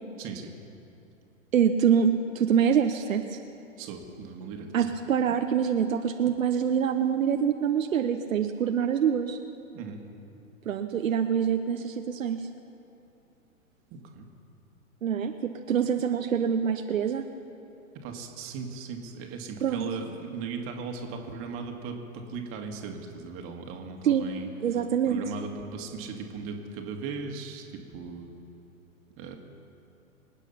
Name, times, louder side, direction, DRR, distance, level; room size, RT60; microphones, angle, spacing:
voice 1, 0.2-0.5 3.8-4.7 9.7-10.0 13.9-14.3 18.0-24.5 25.1-27.6 27.9-28.3 29.2-29.4, right 5 dB, 30° right, 3 dB, 2.0 m, -37 dB
voice 2, 1.5-3.4 4.7-9.4 10.7-12.4 15.0-17.2 19.6-19.9 24.0-24.3 24.6-25.2, right 8 dB, 70° right, 6 dB, 1.0 m, -25 dB
25.0 x 9.1 x 5.7 m, 2.8 s
hypercardioid pair, 115°, 41 cm